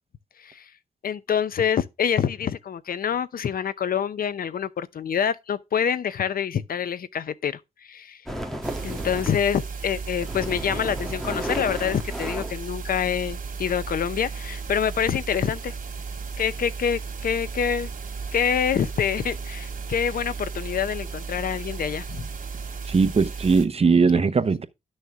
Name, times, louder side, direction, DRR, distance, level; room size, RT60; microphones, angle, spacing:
voice 1, 0.4-0.7 1.0-8.2 8.8-15.8 16.4-17.9 18.3-22.3, left 8 dB, 80° left, 0.7 m, -26 dB
sound 1, 8.3-9.5 9.9-13.3, equal, ahead, 1.8 m, -33 dB
sound 2, 8.6-23.7, right 5 dB, 65° right, 2.0 m, -35 dB
voice 2, 22.8-24.7, right 4 dB, 45° right, 0.9 m, -20 dB
10.5 x 6.5 x 3.6 m
cardioid pair, 80°, 15 cm